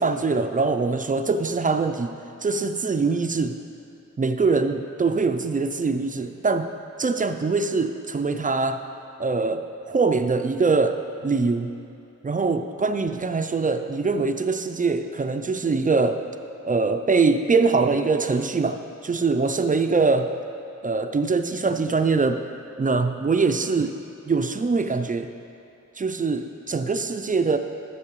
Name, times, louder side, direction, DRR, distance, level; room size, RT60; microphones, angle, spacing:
voice 1, 0.0-2.1 2.4-3.6 4.2-6.7 7.0-8.8 9.2-11.7 12.2-16.2 16.6-20.3 20.8-22.4 22.8-23.9 24.3-25.3 26.0-27.6, right 4 dB, 25° right, 7 dB, 0.4 m, -23 dB
13.0 x 7.3 x 3.1 m, 2.7 s
wide cardioid pair, 105°, 31 cm